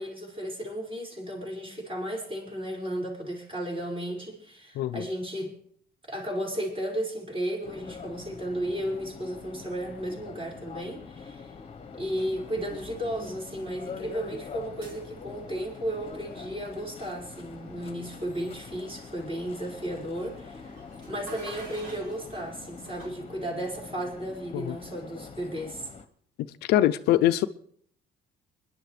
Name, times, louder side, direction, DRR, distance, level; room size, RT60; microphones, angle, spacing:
voice 1, 0.0-5.6 6.1-11.5 11.9-20.8 21.1-25.9, equal, 30° right, 5.3 m, -34 dB
sound 1, 7.6-26.1, left 5 dB, 35° left, 1.0 m, -44 dB
sound 2, 11.2-23.1, right 2 dB, 70° right, 4.6 m, -52 dB
voice 2, 26.7-27.5, left 13 dB, 80° left, 0.5 m, -23 dB
28.5 x 11.0 x 3.2 m
cardioid pair, 110°, 17 cm